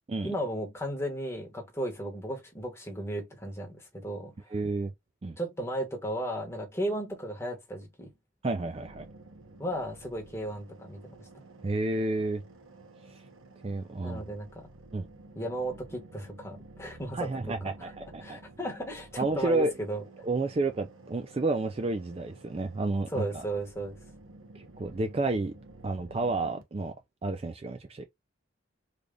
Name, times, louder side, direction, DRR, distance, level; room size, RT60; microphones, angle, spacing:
voice 1, 0.2-4.3 5.4-8.1 9.6-11.3 14.0-14.7 15.3-17.5 17.8-17.9 18.2-20.0 23.1-24.0, right 1 dB, 15° left, 1.1 m, -35 dB
voice 2, 4.5-4.9 5.2-5.4 8.4-9.0 11.6-12.4 13.1-13.2 13.6-14.2 14.9-15.1 17.1-18.4 19.2-19.7 20.2-23.4 24.5-25.5 25.8-26.9 27.2-28.1, right 2 dB, 30° right, 0.3 m, -30 dB
sound 1, 8.6-26.6, right 2 dB, 80° right, 0.9 m, -52 dB
3.4 x 2.4 x 3.7 m
head